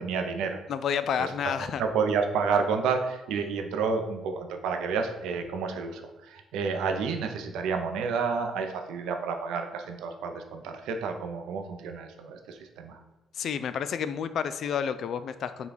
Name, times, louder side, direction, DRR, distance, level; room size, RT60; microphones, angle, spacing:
voice 1, 0.0-0.6 1.2-1.3 1.8-13.0, right 5 dB, 80° right, 5 dB, 0.5 m, -30 dB
voice 2, 0.7-1.8 13.4-15.7, left 7 dB, 65° left, 12 dB, 0.3 m, -30 dB
5.6 x 2.3 x 4.0 m, 1.1 s
supercardioid pair, 75°, 0 cm